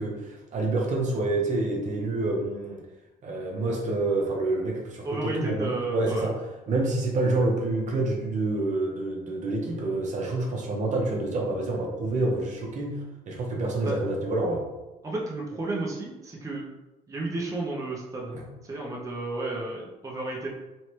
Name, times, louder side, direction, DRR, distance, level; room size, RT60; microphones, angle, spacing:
voice 1, 0.0-2.8 3.2-6.3 6.7-14.6 18.3-18.4, right 2 dB, 45° right, -1 dB, 0.8 m, -27 dB
voice 2, 5.0-6.3 13.8-14.0 15.0-16.6 17.1-18.4 18.6-20.5, right 2 dB, 20° right, -3 dB, 0.7 m, -32 dB
3.1 x 2.8 x 3.1 m, 1.1 s
cardioid pair, 110°, 17 cm